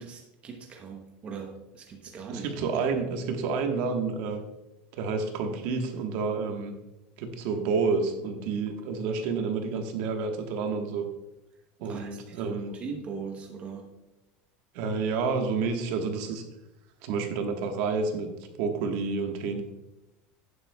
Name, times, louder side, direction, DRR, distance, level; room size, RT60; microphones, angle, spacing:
voice 1, 0.0-2.5 11.9-13.9, right 5 dB, 25° right, 3 dB, 0.9 m, -40 dB
voice 2, 2.3-4.4 4.9-6.7 7.2-11.0 11.8-12.7 14.7-16.4 17.0-18.3 18.6-19.6, right 4 dB, 65° right, 4 dB, 1.3 m, -29 dB
11.0 x 9.3 x 2.3 m, 0.94 s
cardioid pair, 160°, 5 cm